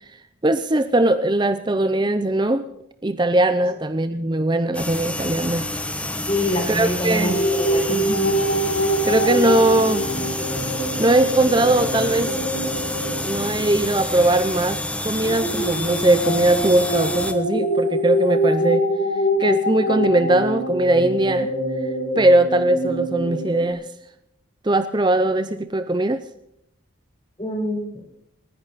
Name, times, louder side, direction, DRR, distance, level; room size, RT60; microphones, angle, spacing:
voice 1, 0.4-2.7 3.0-5.7 6.7-7.4 7.9-8.4 9.0-10.1 11.0-12.3 13.0-18.9 19.4-21.5 22.1-23.9 24.6-26.2, right 2 dB, 20° right, 11 dB, 0.6 m, -20 dB
sound 1, 4.7-17.3, left 1 dB, 5° left, 1.1 m, -28 dB
voice 2, 6.3-8.0 27.4-28.0, left 1 dB, 30° left, 1 dB, 4.5 m, -25 dB
sound 2, 7.2-14.3 15.2-23.7, equal, 80° left, 4.9 m, -24 dB
28.5 x 10.5 x 4.1 m, 0.81 s
head